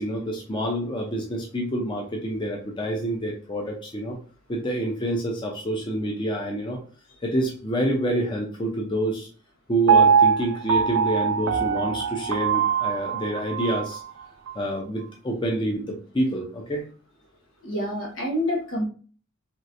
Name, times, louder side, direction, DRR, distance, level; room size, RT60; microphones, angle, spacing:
voice 1, 0.0-4.2 4.5-6.8 7.2-9.3 9.7-14.0 14.5-16.8, right 1 dB, 25° left, 0 dB, 0.5 m, -27 dB
Piano, 9.9-14.0 14.5-14.6, right 6 dB, 80° right, 0.4 m, -22 dB
voice 2, 17.6-18.9, left 1 dB, 75° left, 0 dB, 1.1 m, -27 dB
3.1 x 3.0 x 2.5 m, 0.40 s
head